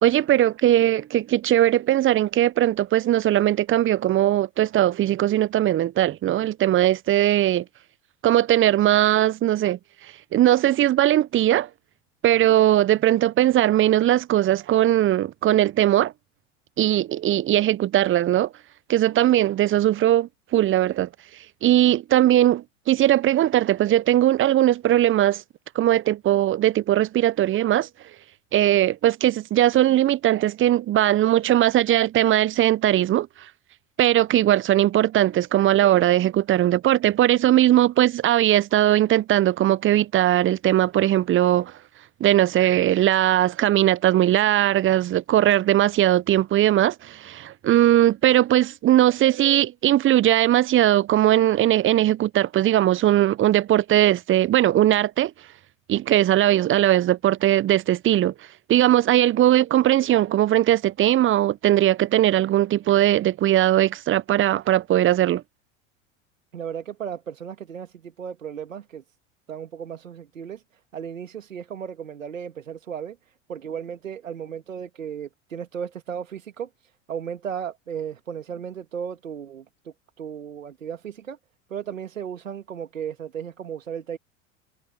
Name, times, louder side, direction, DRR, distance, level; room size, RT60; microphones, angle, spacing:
voice 1, 0.0-7.6 8.2-9.8 10.3-11.7 12.2-16.1 16.8-18.5 18.9-21.1 21.6-25.4 25.7-27.9 28.5-33.3 34.0-41.7 42.2-55.3 55.9-58.3 58.7-65.4, right 13 dB, 30° right, 0.9 m, -19 dB
voice 2, 66.5-69.0 69.5-81.4 81.7-84.2, right 8 dB, 85° right, 2.0 m, -35 dB
figure-of-eight pair, 80°, 39 cm